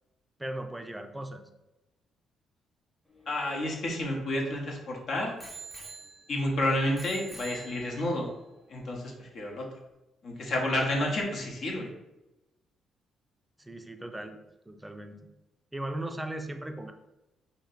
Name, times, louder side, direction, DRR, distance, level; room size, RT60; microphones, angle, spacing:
voice 1, 0.4-1.4 13.6-14.4 14.7-15.3 15.7-16.9, right 1 dB, 10° right, 6 dB, 0.4 m, -37 dB
Bicycle bell, 3.1-4.7 5.4-6.5 7.0-8.2 8.9-9.0, right 3 dB, 15° left, 1.0 m, -47 dB
voice 2, 3.3-5.4 6.3-8.3 8.7-9.7 10.2-11.9, left 1 dB, 60° left, -1 dB, 0.9 m, -30 dB
3.0 x 2.8 x 4.0 m, 0.97 s
cardioid pair, 90°, 0 cm